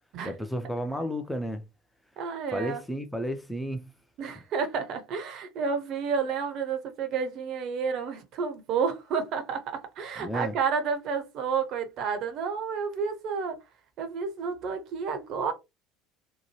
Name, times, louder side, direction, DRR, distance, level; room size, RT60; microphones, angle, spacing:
voice 1, 0.2-1.6 2.5-3.8 10.2-10.6, equal, 5° left, 0.5 m, -32 dB
voice 2, 2.2-2.8 4.2-13.6 14.0-15.5, right 6 dB, 45° right, 0.6 m, -30 dB
2.8 x 2.2 x 3.0 m
figure-of-eight pair, 65°, 0 cm